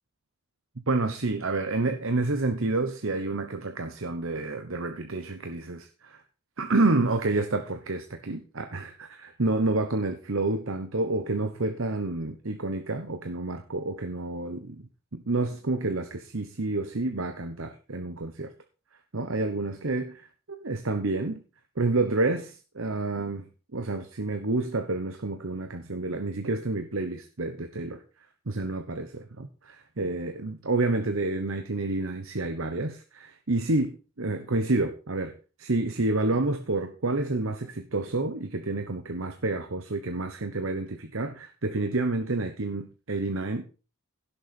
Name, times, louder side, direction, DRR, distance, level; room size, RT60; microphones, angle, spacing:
voice 1, 0.8-6.2 6.6-14.8 15.1-18.5 19.1-21.4 21.8-28.0 28.5-35.3 35.6-43.6, right 2 dB, 65° right, 6 dB, 1.0 m, -29 dB
16.5 x 6.8 x 4.3 m, 0.34 s
head